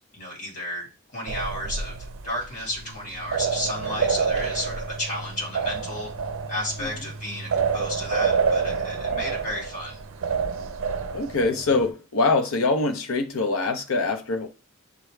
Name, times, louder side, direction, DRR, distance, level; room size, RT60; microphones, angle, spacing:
voice 1, 0.1-6.1 6.5-10.0, left 1 dB, 35° left, 2.0 m, -33 dB
sound 1, 1.3-11.9, right 5 dB, 65° right, 0.5 m, -28 dB
voice 2, 11.1-14.5, left 3 dB, 75° left, 0.7 m, -24 dB
6.6 x 2.2 x 3.2 m
head